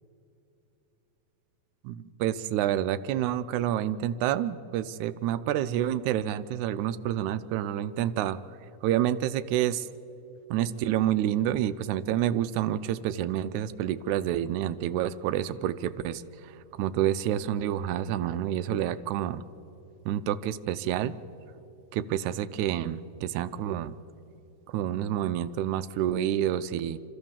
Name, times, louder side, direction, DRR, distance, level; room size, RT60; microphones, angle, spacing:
voice 1, 1.8-8.4 8.8-9.9 10.5-19.4 20.1-21.2 21.9-24.0 24.7-27.0, right 11 dB, 90° right, 13 dB, 2.0 m, -28 dB
25.0 x 14.0 x 7.3 m, 2.9 s
omnidirectional pair, 3.3 m